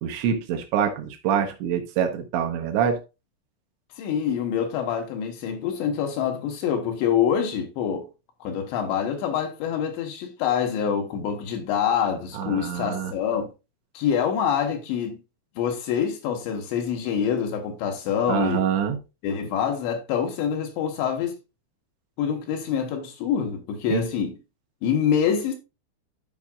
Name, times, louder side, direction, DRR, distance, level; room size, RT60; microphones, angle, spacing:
voice 1, 0.0-3.0 12.4-13.1 18.3-19.0 23.9-24.0, right 8 dB, 75° right, 3.1 m, -25 dB
voice 2, 4.0-8.1 8.4-13.5 13.9-15.2 15.6-18.6 19.2-21.3 22.2-24.4 24.8-25.6, left 8 dB, 75° left, 3.2 m, -26 dB
13.5 x 5.0 x 2.4 m
omnidirectional pair, 5.5 m